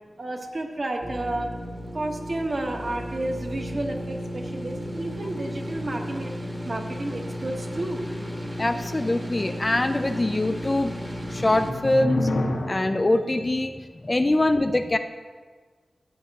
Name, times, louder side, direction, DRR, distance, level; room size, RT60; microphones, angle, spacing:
voice 1, 0.2-1.5 1.9-8.1, right 2 dB, 45° right, 2 dB, 1.2 m, -31 dB
sound 1, 1.0-11.7, equal, 15° right, 1.1 m, -34 dB
sound 2, 1.3-3.0 3.3-3.4 10.7-13.4, left 1 dB, 80° left, 1.2 m, -31 dB
voice 2, 8.6-10.9 11.3-12.3 12.7-15.0, left 2 dB, 25° left, 7 dB, 0.4 m, -23 dB
13.0 x 8.7 x 2.9 m, 1.5 s
cardioid pair, 70°, 0 cm